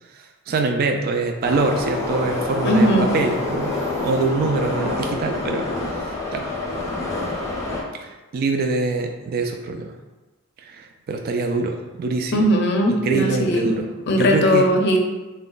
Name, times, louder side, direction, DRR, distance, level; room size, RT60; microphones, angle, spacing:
voice 1, 0.5-3.8 4.0-5.7 6.0-6.5 7.9-9.9 10.6-12.5 12.9-13.9 14.1-14.7, right 3 dB, 45° right, 4 dB, 0.3 m, -24 dB
Subway metro underground, 1.4-7.8, left 2 dB, 15° left, 0.6 m, -26 dB
voice 2, 2.6-3.1 12.3-13.8 14.1-15.0, equal, 55° left, 2 dB, 0.6 m, -18 dB
3.8 x 2.2 x 3.8 m, 1.1 s
head